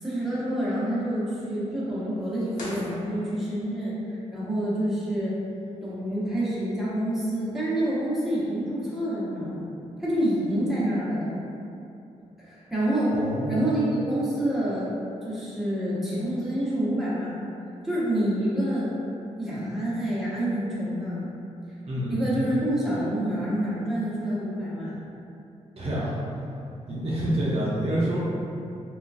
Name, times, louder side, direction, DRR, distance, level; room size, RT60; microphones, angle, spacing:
voice 1, 0.0-5.3 5.8-9.7 10.0-11.3 12.4-13.2 13.5-14.9 15.2-17.4 17.8-19.0 19.4-21.3 22.1-25.0, right 1 dB, ahead, -10 dB, 0.9 m, -27 dB
sound 1, 2.5-3.7, left 1 dB, 70° left, 0.9 m, -41 dB
voice 2, 13.1-13.5 21.8-22.2 25.8-26.1 26.9-28.2, right 1 dB, 50° right, -8 dB, 0.6 m, -27 dB
3.7 x 2.3 x 2.5 m, 2.7 s
cardioid pair, 105°, 13 cm